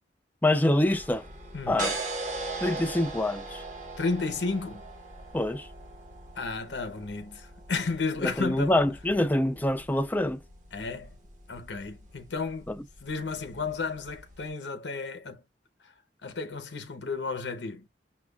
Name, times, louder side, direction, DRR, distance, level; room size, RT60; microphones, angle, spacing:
voice 1, 0.4-1.3 1.7-1.9 2.6-3.6 5.3-5.7 8.2-10.4 12.7-12.8, left 1 dB, 10° left, 0.4 m, -25 dB
sound 1, 0.8-14.5, right 3 dB, 45° right, 1.3 m, -40 dB
voice 2, 1.5-1.9 4.0-4.9 6.4-8.8 10.7-11.2 11.5-12.7 13.0-15.4 16.2-17.8, left 4 dB, 80° left, 0.9 m, -33 dB
6.0 x 2.3 x 2.3 m
head